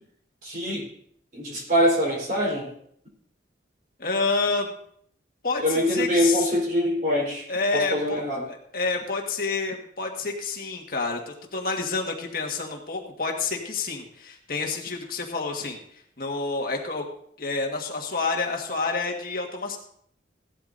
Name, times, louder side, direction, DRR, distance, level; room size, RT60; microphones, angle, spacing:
voice 1, 0.4-0.9 1.3-2.7 5.6-7.5 7.7-8.5, equal, 50° right, -2 dB, 4.0 m, -24 dB
voice 2, 4.0-4.7 5.4-6.5 7.5-15.8 16.2-17.0 17.4-19.8, left 4 dB, 50° left, 1 dB, 1.6 m, -28 dB
17.0 x 12.0 x 2.6 m, 0.66 s
head